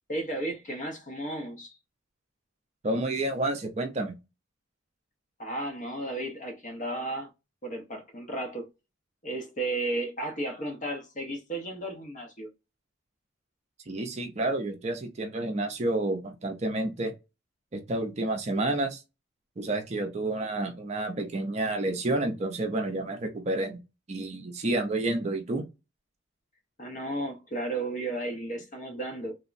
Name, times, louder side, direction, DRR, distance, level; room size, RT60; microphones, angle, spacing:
voice 1, 0.1-1.8 5.4-7.3 7.6-8.7 9.2-12.5 26.8-29.4, right 2 dB, 40° left, 0.7 m, -34 dB
voice 2, 2.8-4.2 13.9-17.1 17.7-19.0 19.6-23.8 24.1-25.6, right 2 dB, 35° right, 0.5 m, -30 dB
3.4 x 2.0 x 2.4 m
head